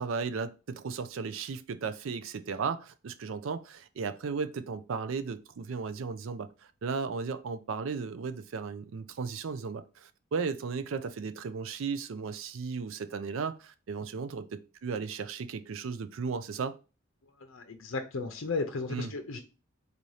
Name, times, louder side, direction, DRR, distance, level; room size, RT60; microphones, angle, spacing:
voice 1, 0.0-6.5 6.8-16.8 18.9-19.1, right 5 dB, 80° right, 0.4 m, -35 dB
voice 2, 17.4-19.4, left 3 dB, 85° left, 0.6 m, -34 dB
4.0 x 2.7 x 4.7 m
head